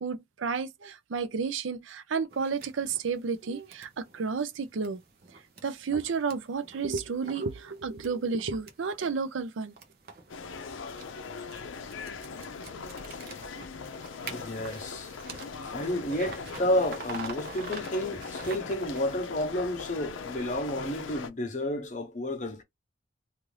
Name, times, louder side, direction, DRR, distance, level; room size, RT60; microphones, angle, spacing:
voice 1, 0.0-5.0 5.6-9.7, right 5 dB, 85° right, 0.5 m, -31 dB
sound 1, 2.3-19.2, right 4 dB, 50° right, 0.7 m, -47 dB
sound 2, 10.3-21.3, left 5 dB, 90° left, 0.5 m, -40 dB
voice 2, 14.3-15.1 15.6-22.6, left 1 dB, 40° left, 0.8 m, -31 dB
2.6 x 2.5 x 3.1 m
head